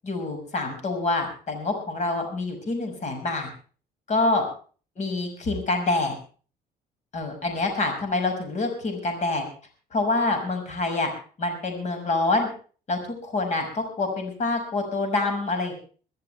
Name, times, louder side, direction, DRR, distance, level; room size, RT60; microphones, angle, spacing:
voice 1, 0.0-3.5 4.1-4.5 5.0-6.1 7.1-9.4 9.9-11.1 11.4-12.5 12.9-15.7, left 2 dB, 45° left, 5 dB, 6.0 m, -26 dB
23.5 x 13.5 x 3.4 m, 0.39 s
cardioid pair, 110°, 17 cm